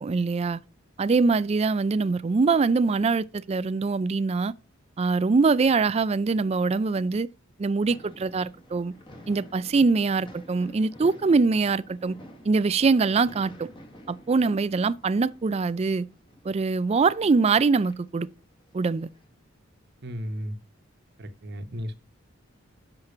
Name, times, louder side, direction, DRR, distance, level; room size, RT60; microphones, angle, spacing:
voice 1, 0.0-0.6 1.0-4.5 5.0-7.3 7.6-8.9 9.3-12.1 12.5-13.7 14.1-16.1 16.4-18.3 18.7-19.1, right 4 dB, 30° right, 0.3 m, -23 dB
sound 1, 7.9-19.2, equal, 25° left, 1.5 m, -50 dB
voice 2, 20.0-20.6 21.2-22.0, equal, 55° right, 1.0 m, -34 dB
6.6 x 5.8 x 5.8 m
head